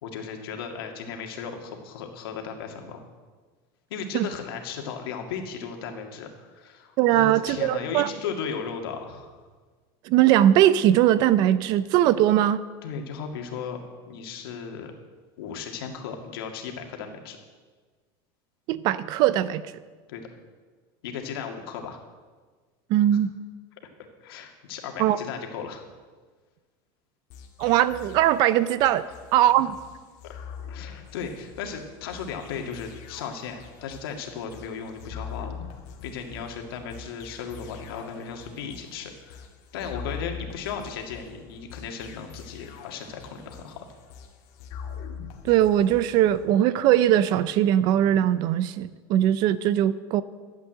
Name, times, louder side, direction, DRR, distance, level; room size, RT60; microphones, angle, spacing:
voice 1, 0.0-3.0 3.9-9.4 12.8-13.8 14.1-14.9 15.4-17.4 20.1-20.2 21.0-22.0 23.1-23.2 24.2-25.9 30.2-30.4 30.7-35.5 36.0-39.5 39.7-43.9, left 6 dB, 90° left, 3 dB, 2.1 m, -36 dB
voice 2, 7.0-8.1 10.0-12.6 18.7-19.6 22.9-23.3 25.0-25.2 27.6-29.0 29.3-29.7 45.4-50.2, right 12 dB, 35° right, 16 dB, 0.4 m, -20 dB
sound 1, 27.3-46.5, left 7 dB, 50° left, 1.5 m, -43 dB
12.0 x 8.3 x 7.8 m, 1.4 s
supercardioid pair, 175°, 12 cm